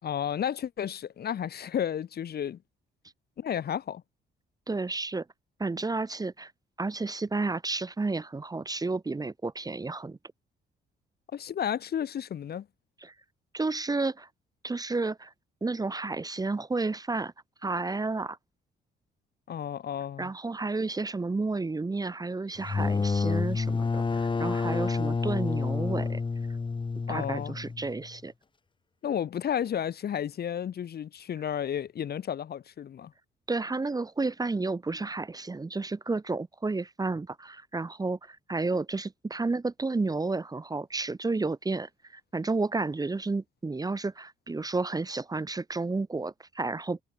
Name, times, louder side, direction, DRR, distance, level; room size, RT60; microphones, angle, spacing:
voice 1, 0.0-2.6 3.4-4.0 11.3-12.7 19.5-20.3 27.1-27.5 29.0-33.1, left 9 dB, 55° left, 1.0 m, -32 dB
voice 2, 4.7-5.2 5.6-6.5 6.8-10.2 13.0-13.1 13.5-14.3 14.6-15.3 15.6-17.3 17.6-18.4 20.2-26.2 27.1-28.3 33.5-47.0, right 3 dB, 20° right, 0.9 m, -31 dB
sound 1, 22.6-28.1, left 4 dB, 25° left, 1.0 m, -29 dB
cardioid pair, 90°, 20 cm